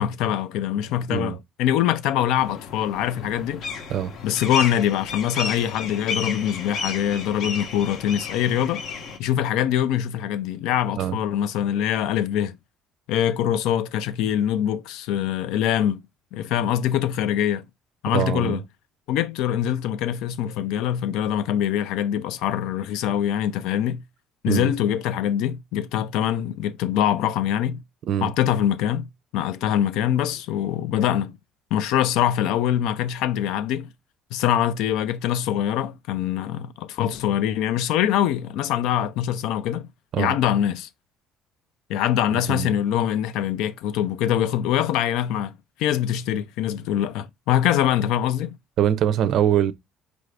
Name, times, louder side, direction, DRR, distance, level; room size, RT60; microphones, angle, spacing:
voice 1, 0.0-3.6 4.2-8.8 9.2-12.6 13.1-16.0 16.3-17.7 18.0-18.6 19.1-24.0 24.4-27.8 28.2-29.1 29.3-31.4 31.7-33.9 34.3-39.9 40.2-40.9 41.9-48.6, left 10 dB, 85° left, 0.4 m, -24 dB
sound 1, 2.4-9.2, left 4 dB, 55° left, 0.7 m, -32 dB
voice 2, 18.1-18.6 24.5-24.7 28.1-28.3 40.1-40.4 42.3-42.7 48.8-49.7, right 10 dB, 55° right, 0.4 m, -23 dB
4.8 x 2.5 x 3.2 m
cardioid pair, 145°, 0 cm